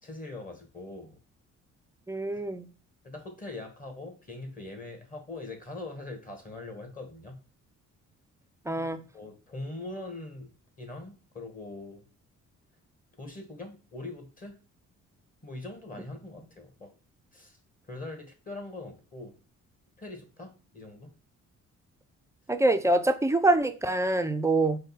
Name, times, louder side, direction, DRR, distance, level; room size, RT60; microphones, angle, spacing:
voice 1, 0.0-1.2 3.0-7.4 8.8-12.0 13.2-14.6 15.4-16.9 17.3-17.6 17.9-19.3 20.0-21.1, left 2 dB, 25° left, 1.4 m, -42 dB
voice 2, 2.1-2.7 8.7-9.0 22.5-24.8, right 2 dB, 10° right, 0.4 m, -25 dB
5.1 x 2.2 x 4.0 m
cardioid pair, 90°, 30 cm